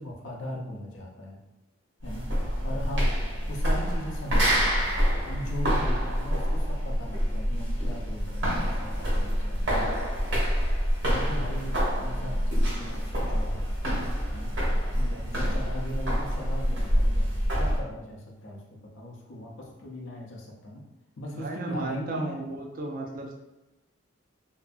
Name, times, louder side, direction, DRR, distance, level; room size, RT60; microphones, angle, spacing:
voice 1, 0.0-1.4 2.0-3.2 3.5-9.9 11.1-13.7 14.3-14.5 14.9-20.8 21.2-22.4, left 1 dB, 70° left, -1 dB, 0.6 m, -39 dB
sound 1, 2.0-17.8, equal, 60° right, 0.8 m, -26 dB
voice 2, 21.4-23.3, right 2 dB, 45° right, 1 dB, 0.4 m, -34 dB
2.7 x 2.4 x 2.5 m, 0.97 s
head